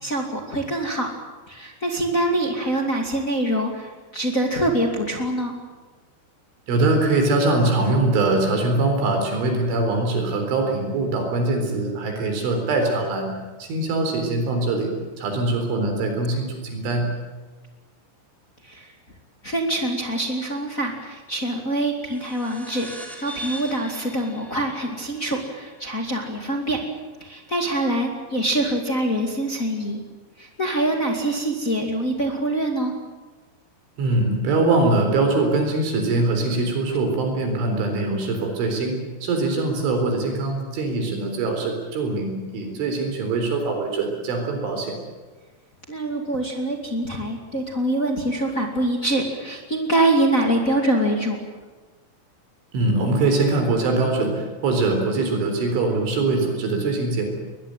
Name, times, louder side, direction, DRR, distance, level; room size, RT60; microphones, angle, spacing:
voice 1, 0.0-1.1 1.5-5.5 18.6-18.9 19.4-22.9 23.2-26.8 27.2-30.0 30.4-32.9 45.9-51.4, right 1 dB, 35° left, 2 dB, 1.3 m, -24 dB
voice 2, 6.7-13.3 13.6-14.9 15.2-17.1 34.0-45.0 52.7-57.3, right 2 dB, 70° right, 4 dB, 6.3 m, -22 dB
sound 1, 22.0-27.0, right 1 dB, ahead, 3.0 m, -41 dB
21.5 x 21.5 x 9.1 m, 1.3 s
omnidirectional pair, 5.8 m